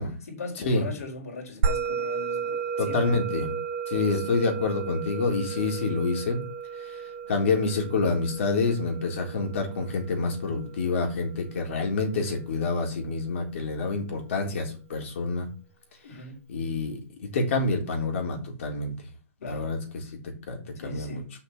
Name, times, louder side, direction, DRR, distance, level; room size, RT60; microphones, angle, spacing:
voice 1, 0.3-3.1 4.1-4.2 16.0-16.4 19.4-19.7 20.7-21.3, left 4 dB, 80° left, 4.6 m, -39 dB
Musical instrument, 1.6-12.2, right 6 dB, 60° right, 3.2 m, -33 dB
voice 2, 2.8-3.6 3.9-6.4 6.8-7.0 7.3-15.5 16.5-18.9 19.4-20.0 20.5-20.6 20.8-21.2, left 3 dB, 60° left, 3.8 m, -27 dB
7.0 x 5.7 x 7.2 m
hypercardioid pair, 160°, 8 cm